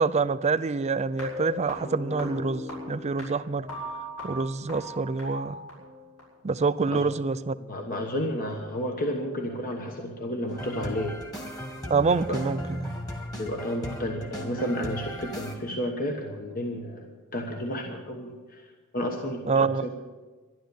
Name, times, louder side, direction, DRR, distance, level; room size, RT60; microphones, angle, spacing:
voice 1, 0.0-3.7 4.2-5.7 6.4-7.6 11.9-13.0 19.5-19.9, right 4 dB, 30° right, 14 dB, 0.4 m, -26 dB
sound 1, 1.1-6.2, left 1 dB, 85° left, 6.7 m, -38 dB
voice 2, 7.6-11.2 12.3-12.5 13.4-19.9, equal, 40° left, 2 dB, 1.3 m, -32 dB
sound 2, 10.5-15.5, equal, 15° left, 1.9 m, -37 dB
12.5 x 11.5 x 8.3 m, 1.4 s
head